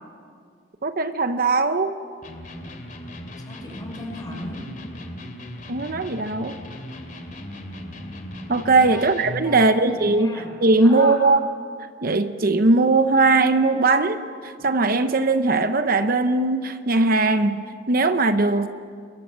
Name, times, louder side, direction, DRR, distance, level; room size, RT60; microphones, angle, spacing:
voice 1, 0.8-2.0 5.7-6.6 8.5-11.4 12.0-17.6 17.9-18.7, right 3 dB, 50° right, 9 dB, 0.8 m, -19 dB
Electric guitar, 2.2-9.5, left 1 dB, 45° left, 3.1 m, -37 dB
voice 2, 3.4-4.7 8.8-9.1 9.4-11.2 14.6-14.7, left 1 dB, 20° left, 1 dB, 5.6 m, -36 dB
29.5 x 23.0 x 7.4 m, 2.2 s
head